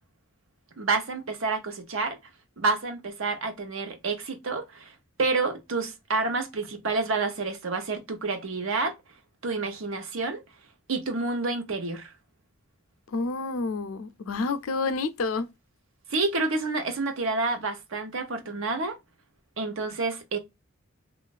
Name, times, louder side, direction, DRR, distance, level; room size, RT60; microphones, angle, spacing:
voice 1, 0.8-2.2 2.6-4.9 5.2-9.0 9.4-10.4 10.9-12.1 16.1-19.0 19.6-20.4, right 3 dB, 75° right, 0.9 m, -29 dB
voice 2, 13.1-15.5, left 3 dB, 90° left, 0.5 m, -29 dB
3.1 x 2.4 x 2.2 m
head